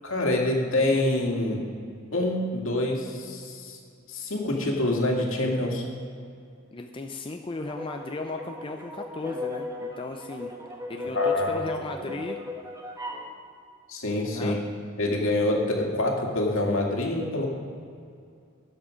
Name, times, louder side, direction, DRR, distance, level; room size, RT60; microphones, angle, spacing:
voice 1, 0.0-1.6 2.1-3.8 4.1-5.8 11.2-11.6 13.9-14.6 15.0-17.5, left 1 dB, 70° left, -1 dB, 2.2 m, -26 dB
voice 2, 6.7-10.5 10.9-12.4 14.3-14.6, left 3 dB, 25° left, 4 dB, 0.5 m, -35 dB
sound 1, 7.6-13.3, left 3 dB, 15° right, 1.1 m, -34 dB
13.0 x 8.8 x 5.1 m, 2.4 s
head